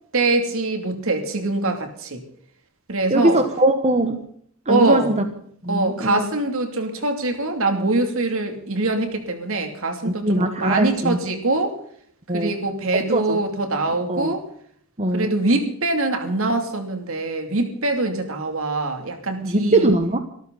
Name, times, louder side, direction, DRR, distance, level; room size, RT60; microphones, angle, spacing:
voice 1, 0.1-2.2 2.9-3.4 4.7-5.1 5.7-11.8 12.3-14.4 15.1-19.9, right 2 dB, 65° right, 6 dB, 2.9 m, -23 dB
voice 2, 3.1-4.2 4.7-5.2 5.6-6.2 10.0-11.2 12.3-12.6 13.1-13.4 14.1-14.3 15.0-15.3 19.4-20.2, right 1 dB, 30° right, 7 dB, 1.2 m, -21 dB
25.0 x 13.5 x 4.1 m, 0.64 s
head